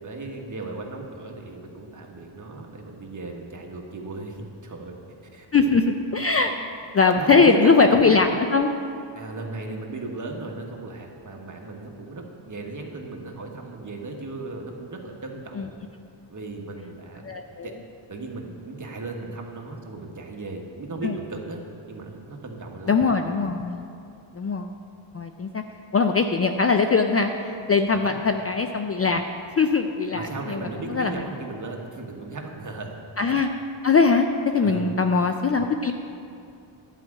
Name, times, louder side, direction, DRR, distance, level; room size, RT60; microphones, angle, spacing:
voice 1, 0.0-4.9 5.3-5.8 6.4-6.5 7.1-8.2 9.1-15.7 16.3-17.3 17.6-17.7 18.1-21.6 21.9-23.0 27.9-28.2 30.1-33.0 34.6-34.8, right 3 dB, 35° right, 1 dB, 1.4 m, -36 dB
voice 2, 5.5-6.6 6.9-8.7 15.6-15.7 17.2-17.7 21.0-21.1 22.9-23.8 24.3-24.7 25.1-25.6 25.9-29.2 29.6-31.3 33.2-33.5 33.8-35.9, left 4 dB, 30° left, 5 dB, 0.4 m, -21 dB
11.0 x 4.9 x 8.3 m, 2.5 s
cardioid pair, 95°, 50 cm